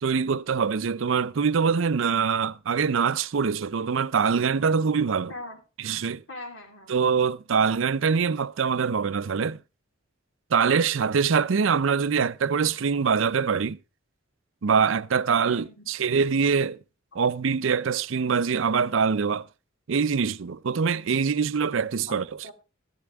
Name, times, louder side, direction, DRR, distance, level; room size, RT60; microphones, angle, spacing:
voice 1, 0.0-5.3 5.8-6.2 6.9-9.6 10.5-13.8 14.6-16.8 17.1-19.5 19.9-22.2, right 6 dB, 70° right, 0.5 m, -24 dB
voice 2, 5.3-5.6 6.3-6.9 15.5-15.9 22.1-22.5, left 2 dB, 80° left, 3.5 m, -41 dB
14.0 x 10.5 x 3.4 m
head